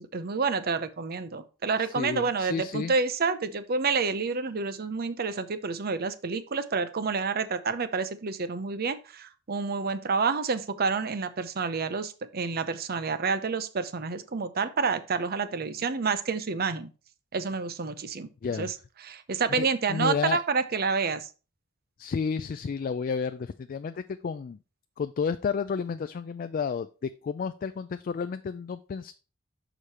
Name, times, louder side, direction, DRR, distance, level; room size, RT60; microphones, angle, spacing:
voice 1, 0.0-16.9 17.3-18.3 18.6-18.7 19.0-21.3, right 4 dB, 50° right, 12 dB, 0.6 m, -29 dB
voice 2, 1.8-2.9 18.4-18.7 19.5-20.4 22.0-24.6 25.0-29.1, left 5 dB, 45° left, 10 dB, 0.3 m, -31 dB
6.5 x 5.0 x 4.2 m, 0.34 s
head